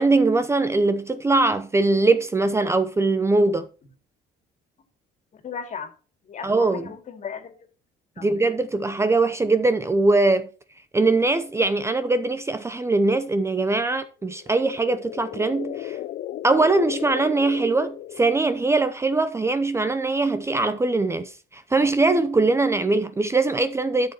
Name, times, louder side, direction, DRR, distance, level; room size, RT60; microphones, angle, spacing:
voice 1, 0.0-3.7 6.4-6.9 8.2-10.5 10.9-16.0 16.4-24.1, right 3 dB, 15° right, 0.6 m, -21 dB
voice 2, 5.4-5.9 6.3-7.6 8.2-8.4, left 6 dB, 45° left, 2.3 m, -36 dB
sound 1, 14.3-18.7, left 12 dB, 60° left, 0.5 m, -35 dB
12.0 x 7.0 x 3.0 m
cardioid pair, 110°, 17 cm